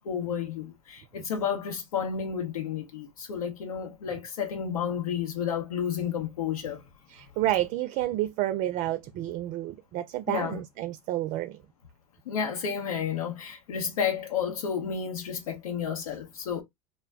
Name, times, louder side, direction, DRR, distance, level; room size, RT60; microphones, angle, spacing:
voice 1, 0.0-6.8 10.3-10.5 12.3-16.6, left 7 dB, 80° left, 1.0 m, -31 dB
voice 2, 7.1-11.6, right 14 dB, 45° right, 0.4 m, -30 dB
2.2 x 2.0 x 3.5 m
hypercardioid pair, 85°, 18 cm